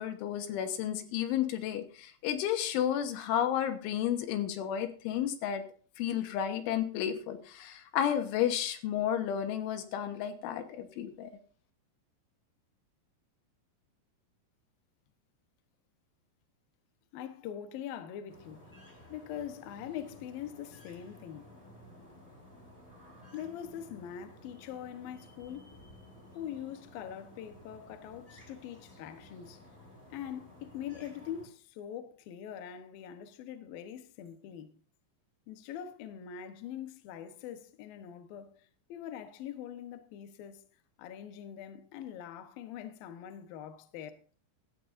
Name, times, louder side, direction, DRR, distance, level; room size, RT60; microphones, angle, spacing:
voice 1, 0.0-5.6 6.0-11.3, left 10 dB, 85° left, 3.8 m, -32 dB
voice 2, 17.1-18.7 19.1-21.5 23.3-25.7 26.4-29.6 30.1-34.7 35.5-38.6 38.9-40.6 41.0-44.1, left 9 dB, 65° left, 2.5 m, -43 dB
sound 1, 18.3-31.5, left 1 dB, 5° left, 5.0 m, -55 dB
16.0 x 13.0 x 2.6 m
omnidirectional pair, 5.4 m